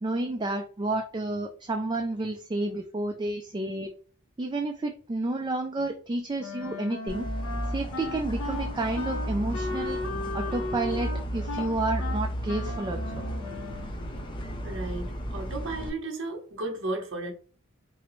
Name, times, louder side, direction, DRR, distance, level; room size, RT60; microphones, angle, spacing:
voice 1, 0.0-3.9 4.4-7.3 7.7-10.0 10.3-13.3 15.4-15.5, right 2 dB, 20° right, 0.3 m, -30 dB
Wind instrument woodwind instrument, 6.4-14.0, left 3 dB, 85° left, 0.7 m, -36 dB
sound 1, 7.1-15.9, equal, 25° left, 0.6 m, -34 dB
voice 2, 14.1-17.3, right 2 dB, 60° right, 0.9 m, -35 dB
5.3 x 2.0 x 3.0 m
head